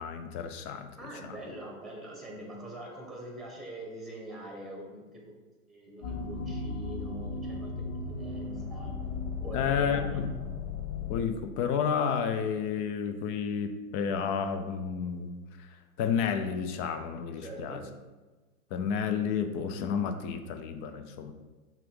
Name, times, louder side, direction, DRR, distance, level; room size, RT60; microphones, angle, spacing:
voice 1, 0.0-1.4 9.5-10.3 11.1-15.7 16.0-17.8 18.7-21.3, left 7 dB, 25° left, 8 dB, 0.4 m, -31 dB
voice 2, 1.0-5.2 5.7-7.7 8.1-8.9 9.4-10.2 17.4-17.8, right 1 dB, ahead, -1 dB, 1.5 m, -43 dB
sound 1, 6.0-11.2, left 4 dB, 65° left, 1.5 m, -36 dB
5.6 x 3.5 x 5.3 m, 1.2 s
hypercardioid pair, 110°, 43 cm